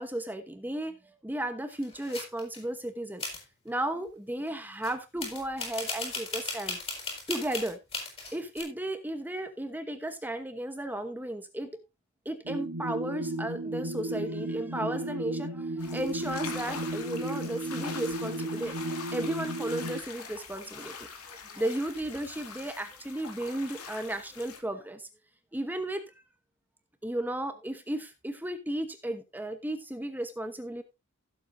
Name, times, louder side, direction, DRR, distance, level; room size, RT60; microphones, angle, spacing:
voice 1, 0.0-3.2 3.6-6.8 7.3-7.8 8.3-11.7 12.2-18.8 19.1-25.1 25.5-26.0 27.0-30.8, right 1 dB, 10° right, 7 dB, 1.0 m, -34 dB
sound 1, 1.7-2.6 3.2-3.4 4.8-4.9 5.2-8.6, left 3 dB, 25° left, 5.2 m, -36 dB
sound 2, 12.5-20.0, right 1 dB, 80° right, 1.5 m, -34 dB
sound 3, 15.8-24.6, left 5 dB, 70° left, 2.5 m, -43 dB
16.5 x 7.7 x 2.7 m, 0.24 s
head